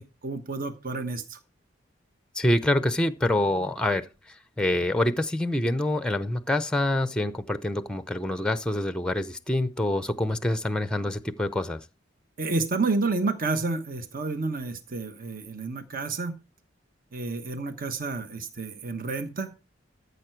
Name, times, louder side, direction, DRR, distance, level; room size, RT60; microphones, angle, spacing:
voice 1, 0.0-1.4 12.4-16.3 17.1-19.5, right 3 dB, 50° right, 1.1 m, -30 dB
voice 2, 2.4-4.0 4.6-11.8, left 1 dB, 5° left, 0.6 m, -26 dB
14.0 x 6.7 x 4.5 m
head